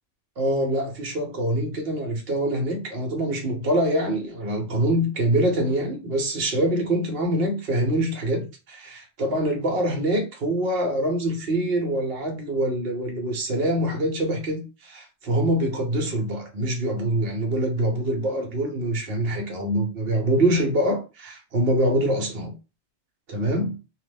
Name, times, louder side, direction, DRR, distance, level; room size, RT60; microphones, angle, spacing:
voice 1, 0.4-22.5 23.3-23.8, right 1 dB, 50° right, 1.0 m, -24 dB
2.9 x 2.0 x 3.3 m
omnidirectional pair, 1.4 m